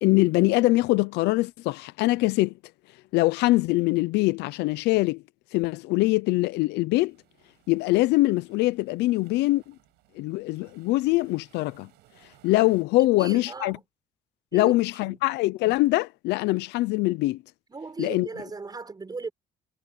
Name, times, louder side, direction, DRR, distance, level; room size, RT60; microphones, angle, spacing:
voice 1, 0.0-2.5 3.1-5.2 5.5-7.2 7.7-9.7 10.2-11.9 12.4-13.8 14.5-17.4 18.0-18.3, left 19 dB, 90° left, 0.7 m, -23 dB
sound 1, 7.1-12.9, right 19 dB, 90° right, 7.3 m, -61 dB
voice 2, 13.0-13.8 14.5-14.7 15.0-15.2 17.7-19.3, right 4 dB, 25° right, 6.7 m, -37 dB
cardioid pair, 110°, 17 cm